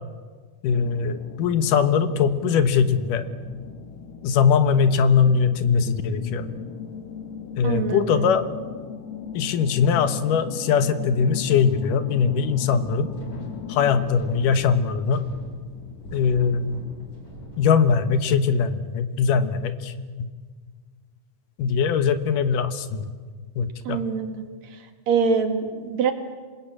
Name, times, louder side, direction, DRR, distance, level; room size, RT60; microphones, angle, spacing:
voice 1, 0.6-3.2 4.2-6.5 7.6-8.5 9.3-13.1 13.7-15.2 16.1-16.8 17.6-19.9 21.6-23.1 23.6-24.0, left 6 dB, 90° left, 10 dB, 2.8 m, -21 dB
sound 1, 0.7-14.1, left 7 dB, 40° left, 1.4 m, -38 dB
voice 2, 7.6-8.3 23.8-24.5 25.1-26.1, right 5 dB, 60° right, 6 dB, 3.2 m, -24 dB
Wind, 12.9-18.3, equal, 60° left, 8.6 m, -43 dB
27.0 x 19.0 x 8.7 m, 1.5 s
omnidirectional pair, 3.6 m